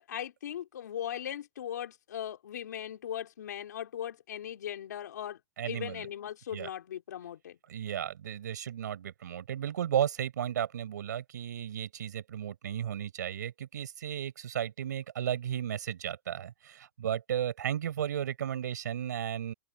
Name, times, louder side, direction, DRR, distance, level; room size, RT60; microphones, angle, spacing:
voice 1, 0.0-5.4 5.7-7.6, left 10 dB, 80° left, 3.8 m, -39 dB
voice 2, 5.6-6.1 6.5-6.7 7.7-19.5, right 10 dB, 80° right, 6.1 m, -34 dB
open air
hypercardioid pair, 150°, 9 cm